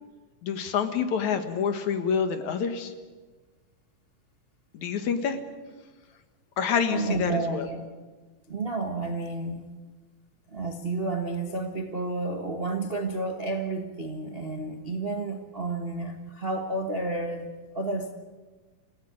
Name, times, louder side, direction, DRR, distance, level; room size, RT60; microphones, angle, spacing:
voice 1, 0.4-2.9 4.7-5.4 6.6-7.7, left 6 dB, 65° left, 8 dB, 2.8 m, -27 dB
voice 2, 6.9-7.9 8.5-9.7 10.5-17.5 17.7-18.1, right 3 dB, 70° right, 4 dB, 0.5 m, -31 dB
27.5 x 16.5 x 8.9 m, 1.4 s
omnidirectional pair, 3.7 m